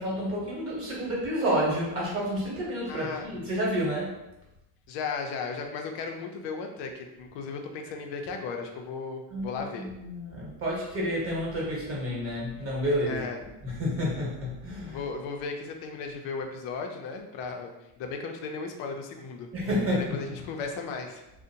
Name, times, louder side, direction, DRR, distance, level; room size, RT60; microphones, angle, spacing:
voice 1, 0.0-4.1 9.3-15.0 19.5-20.2, equal, 30° right, -4 dB, 1.1 m, -30 dB
voice 2, 2.9-3.3 4.9-9.9 13.1-13.4 14.9-19.5 19.9-21.2, left 4 dB, 65° left, 3 dB, 0.6 m, -36 dB
2.5 x 2.1 x 2.7 m, 0.95 s
supercardioid pair, 110°, 47 cm